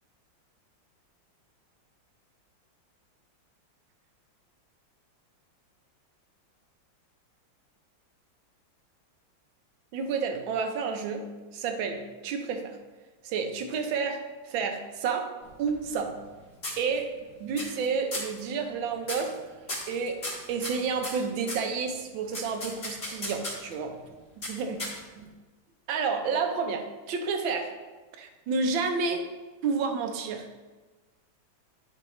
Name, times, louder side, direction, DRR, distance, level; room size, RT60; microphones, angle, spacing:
voice 1, 9.9-12.8 13.2-15.3 15.6-16.2 16.8-17.1 17.4-19.4 19.9-24.0 24.4-24.8 25.2-25.3 25.9-27.8 28.2-29.3 29.6-30.6, right 5 dB, 75° right, 5 dB, 1.5 m, -30 dB
sound 1, 15.4-16.3 16.6-17.2 17.6-17.9 18.1-18.4 19.0-19.4 19.7-21.7 22.3-23.7 24.4-25.3, left 1 dB, 35° left, 1.7 m, -36 dB
10.5 x 4.8 x 3.1 m, 1.3 s
omnidirectional pair, 2.2 m